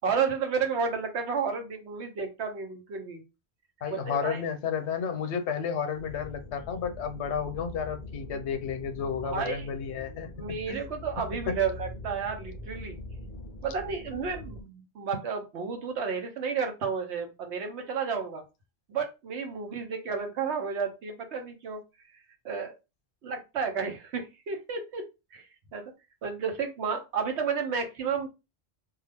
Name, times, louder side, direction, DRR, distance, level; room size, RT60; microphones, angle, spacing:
voice 1, 0.0-3.2 3.9-4.4 9.2-9.7 10.4-13.0 13.6-18.4 18.9-21.8 22.4-22.7 23.2-25.0 25.3-25.4 25.7-25.8 26.2-28.3, right 6 dB, 80° right, 1.0 m, -31 dB
voice 2, 3.8-10.3 10.7-10.8 11.5-11.6, left 7 dB, 85° left, 0.9 m, -32 dB
sound 1, 5.9-14.6, left 2 dB, 55° left, 0.4 m, -43 dB
2.3 x 2.3 x 3.3 m
omnidirectional pair, 1.1 m